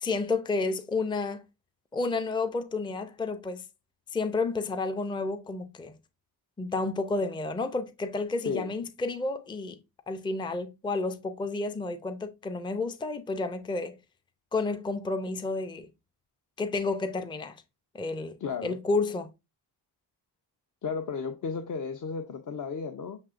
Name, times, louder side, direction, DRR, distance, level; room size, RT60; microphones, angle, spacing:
voice 1, 0.0-1.4 1.9-3.6 4.1-5.9 6.6-9.8 10.1-13.9 14.5-15.9 16.6-17.6 17.9-19.3, left 3 dB, 10° left, 0.4 m, -31 dB
voice 2, 18.4-18.8 20.8-23.2, left 5 dB, 50° left, 0.7 m, -33 dB
7.2 x 2.7 x 2.5 m
cardioid pair, 85°, 41 cm